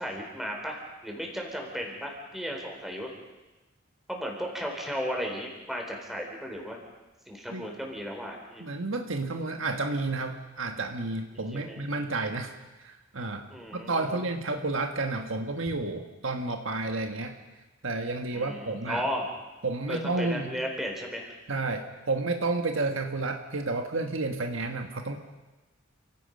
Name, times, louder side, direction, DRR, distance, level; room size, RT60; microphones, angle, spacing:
voice 1, 0.0-3.1 4.1-6.8 7.3-8.7 11.3-11.9 13.5-14.2 18.3-19.3 19.9-21.3, equal, ahead, 0 dB, 4.1 m, -35 dB
voice 2, 8.6-12.5 12.8-13.4 13.7-17.3 17.8-19.0 19.6-20.5 21.5-25.2, right 3 dB, 70° right, 5 dB, 1.6 m, -31 dB
29.0 x 17.0 x 5.4 m, 1.1 s
head